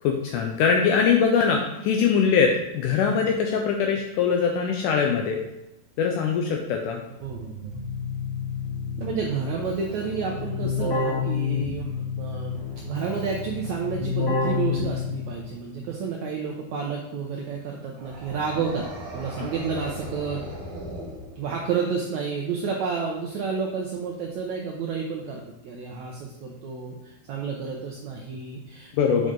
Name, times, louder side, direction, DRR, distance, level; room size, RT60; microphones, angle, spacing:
voice 1, 0.0-5.4 6.0-7.0 19.4-19.5 29.0-29.3, left 6 dB, 80° left, 2 dB, 1.8 m, -22 dB
Keyboard (musical), 7.2-15.5, left 5 dB, 55° left, 2.7 m, -29 dB
voice 2, 7.2-7.8 9.0-20.5 21.4-29.3, right 5 dB, 80° right, 0 dB, 1.6 m, -31 dB
sound 1, 17.9-21.8, right 1 dB, 40° right, 2.6 m, -38 dB
7.6 x 5.4 x 3.8 m, 0.92 s
omnidirectional pair, 4.2 m